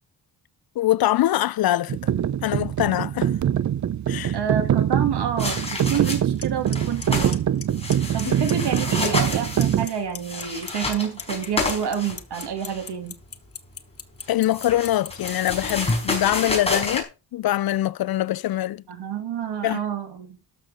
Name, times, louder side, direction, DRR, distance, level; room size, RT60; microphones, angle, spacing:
voice 1, 0.8-2.0 2.4-3.3 4.1-4.4 8.2-8.3 14.3-18.8 19.6-19.8, left 14 dB, 65° left, 0.5 m, -23 dB
sound 1, 1.9-9.9, right 10 dB, 45° right, 0.6 m, -24 dB
voice 2, 4.3-7.3 8.1-13.2 18.9-20.4, right 8 dB, 80° right, 2.8 m, -28 dB
sound 2, 5.4-6.4 6.7-7.4 7.7-12.9 14.2-17.0, left 2 dB, 15° left, 4.8 m, -29 dB
Clock, 6.1-6.2 6.4-6.8 7.0-7.6 7.9-8.2 8.5-9.3 9.6-15.9, left 6 dB, 35° left, 1.1 m, -34 dB
13.0 x 6.8 x 5.0 m
wide cardioid pair, 150°, 40 cm